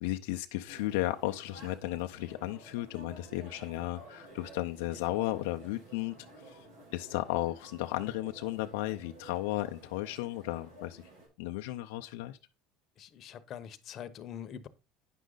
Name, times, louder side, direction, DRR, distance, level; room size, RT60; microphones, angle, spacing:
voice 1, 0.0-6.2 6.4-6.7 6.9-11.0 11.4-12.4, left 16 dB, 85° left, 0.5 m, -34 dB
sound 1, 0.7-11.3, right 2 dB, 90° right, 5.8 m, -53 dB
voice 2, 13.0-14.7, left 9 dB, 50° left, 0.9 m, -44 dB
9.1 x 6.3 x 3.9 m
supercardioid pair, 115°, 0 cm